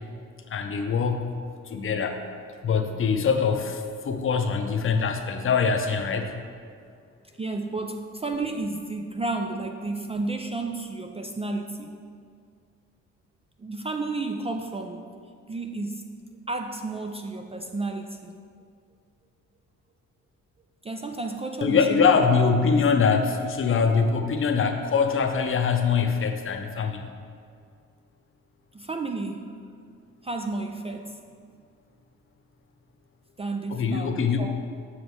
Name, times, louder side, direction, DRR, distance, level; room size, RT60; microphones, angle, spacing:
voice 1, 0.5-1.3 1.7-2.2 2.6-6.3 21.6-27.1 33.7-34.6, left 5 dB, 45° left, 5 dB, 0.7 m, -23 dB
voice 2, 7.4-12.0 13.6-15.1 15.5-16.0 16.5-18.3 20.8-22.0 28.7-29.5 30.2-31.2 33.4-34.6, right 3 dB, 20° right, 4 dB, 0.3 m, -32 dB
7.1 x 6.0 x 3.1 m, 2.2 s
cardioid pair, 90°, 30 cm